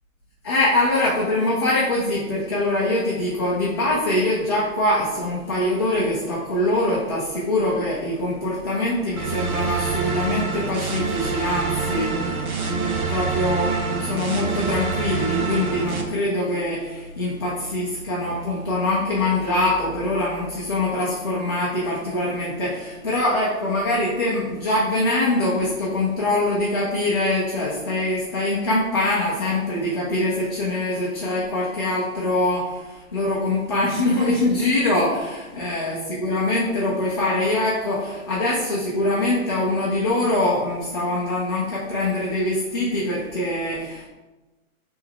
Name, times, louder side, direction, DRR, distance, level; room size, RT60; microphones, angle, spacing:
voice 1, 0.4-44.1, left 1 dB, 20° left, -7 dB, 0.5 m, -23 dB
sound 1, 9.2-16.0, right 5 dB, 90° right, 1.3 m, -26 dB
7.4 x 3.5 x 3.6 m, 1.1 s
hypercardioid pair, 170°, 42 cm